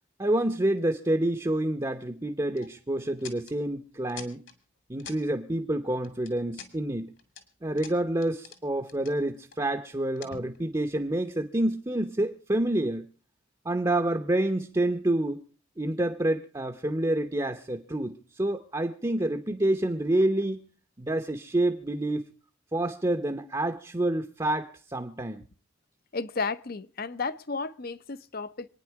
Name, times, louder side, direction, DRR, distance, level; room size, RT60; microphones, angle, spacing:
voice 1, 0.2-4.4 4.9-7.1 7.6-13.1 13.6-15.4 15.8-20.6 21.0-22.2 22.7-25.4, right 1 dB, 20° right, 0.8 m, -28 dB
sound 1, 2.6-2.7 3.2-3.6 4.1-4.5 5.0-5.2 6.0-6.7 7.2-7.4 7.8-8.6 8.8-9.6 10.2-10.8, left 6 dB, 60° left, 2.2 m, -45 dB
voice 2, 26.1-28.7, left 4 dB, 45° left, 0.7 m, -33 dB
26.0 x 9.8 x 4.7 m
head